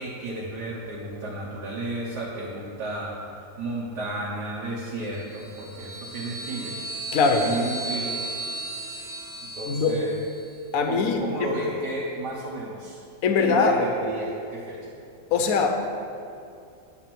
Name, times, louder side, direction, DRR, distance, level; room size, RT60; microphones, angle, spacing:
voice 1, 0.0-3.2 3.6-6.8 7.3-8.2 9.4-10.1 10.9-13.0 13.4-14.9, right 2 dB, 75° right, -5 dB, 1.7 m, -32 dB
sound 1, 5.1-10.5, right 2 dB, 30° right, 1.1 m, -35 dB
voice 2, 7.1-7.5 9.7-9.9 10.7-11.5 13.2-13.8 15.3-15.8, left 5 dB, 65° left, 5 dB, 1.2 m, -22 dB
10.0 x 4.4 x 7.5 m, 2.5 s
omnidirectional pair, 1.7 m